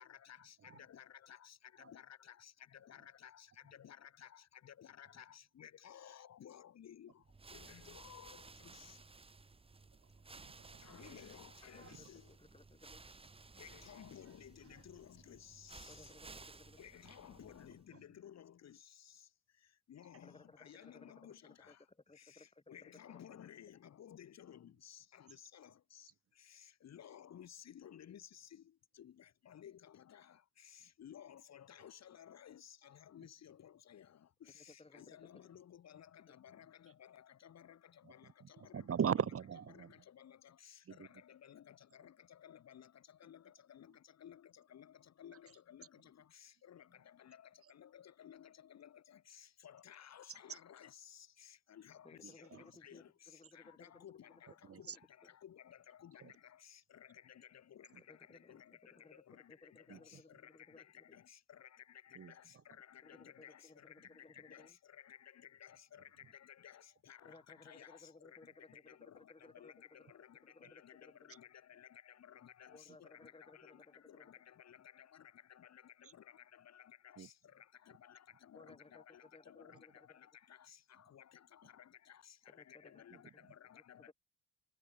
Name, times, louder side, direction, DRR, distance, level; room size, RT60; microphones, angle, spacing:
voice 1, 0.0-9.1 10.8-12.4 13.6-16.2 16.8-21.9 22.1-38.9 39.7-84.1, left 9 dB, 60° left, 2.5 m, -57 dB
sound 1, 7.2-17.9, right 3 dB, 20° right, 1.2 m, -57 dB
voice 2, 10.3-11.2 11.7-12.0 38.0-39.9 40.9-41.1 50.5-50.6 52.2-52.6 54.7-55.0 56.2-56.3 59.9-60.2 62.2-62.3 76.0-76.1 77.2-77.3, right 8 dB, 50° right, 2.3 m, -40 dB
voice 3, 11.8-13.1 15.9-16.8 20.1-23.4 34.5-35.4 52.0-54.4 54.7-54.8 55.2-55.3 58.1-61.2 63.0-64.8 67.2-71.3 72.7-74.3 78.5-80.3 82.5-83.2 83.7-84.1, left 3 dB, 20° left, 7.5 m, -61 dB
cardioid pair, 90°, 30 cm